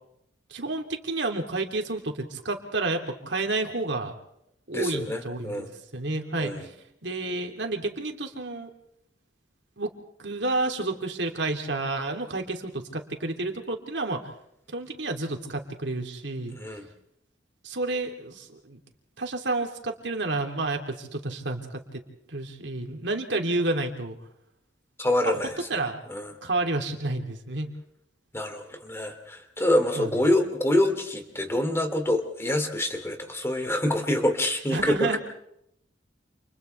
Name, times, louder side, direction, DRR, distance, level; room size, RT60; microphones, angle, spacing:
voice 1, 0.5-4.1 4.7-6.7 7.0-8.7 9.8-9.9 10.2-14.2 14.7-16.5 17.6-18.8 19.2-22.0 22.3-24.2 25.2-25.4 25.7-26.0 26.4-27.7 29.9-30.1 34.7-35.2, right 2 dB, 65° right, 3 dB, 3.2 m, -30 dB
voice 2, 4.7-5.7 6.4-6.7 16.5-16.8 25.0-25.5 26.1-26.3 28.3-35.2, left 1 dB, 15° left, 5 dB, 2.9 m, -26 dB
30.0 x 28.5 x 3.5 m, 0.76 s
head